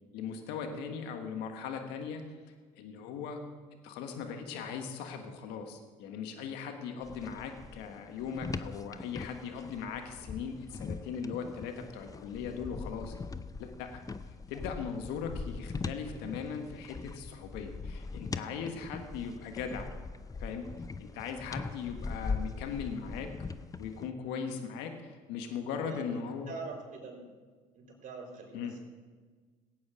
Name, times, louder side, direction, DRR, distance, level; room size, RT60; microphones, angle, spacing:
voice 1, 0.1-2.2 2.8-3.4 3.8-13.1 13.6-14.0 14.5-19.9 20.4-20.6 21.0-23.3 23.8-26.5 28.5-28.7, left 6 dB, 80° left, 5 dB, 1.5 m, -39 dB
sound 1, 7.0-24.1, left 4 dB, 20° left, 0.6 m, -41 dB
voice 2, 25.7-26.2 26.5-27.2 27.7-28.8, right 4 dB, 50° right, 0 dB, 4.3 m, -44 dB
17.0 x 8.7 x 5.0 m, 1.4 s
supercardioid pair, 75°, 17 cm